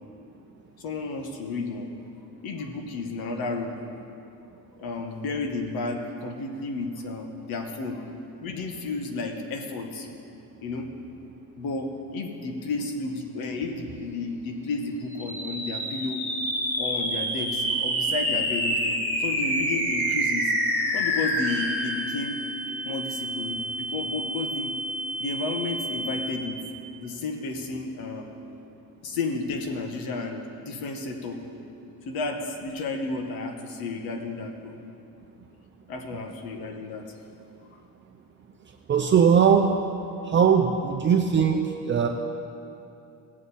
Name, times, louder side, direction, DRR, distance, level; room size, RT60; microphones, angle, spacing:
voice 1, 0.8-1.9 2.4-3.8 4.8-8.0 8.4-10.1 10.6-10.9 11.6-16.2 16.8-20.5 20.9-22.4 22.6-24.8 25.2-26.6 27.0-28.3 29.0-31.4 32.1-34.8 35.9-37.1, left 3 dB, 85° left, 4 dB, 1.3 m, -32 dB
sound 1, 15.1-26.7, equal, 5° left, 2.3 m, -28 dB
voice 2, 38.9-39.7 40.2-42.1, right 7 dB, 35° right, 2 dB, 0.6 m, -20 dB
18.0 x 7.5 x 4.2 m, 2.7 s
cardioid pair, 130°, 35 cm